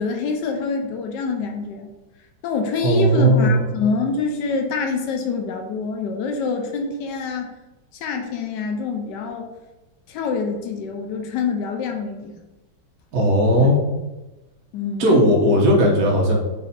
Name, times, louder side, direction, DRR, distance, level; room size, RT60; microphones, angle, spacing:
voice 1, 0.0-1.9 2.4-7.5 8.0-9.5 10.1-12.4 13.6-13.7 14.7-15.2, left 4 dB, 75° left, 3 dB, 1.1 m, -25 dB
voice 2, 2.8-3.6 13.1-13.8 15.0-16.3, equal, 55° right, -2 dB, 1.2 m, -16 dB
4.2 x 2.6 x 3.9 m, 1.1 s
omnidirectional pair, 2.1 m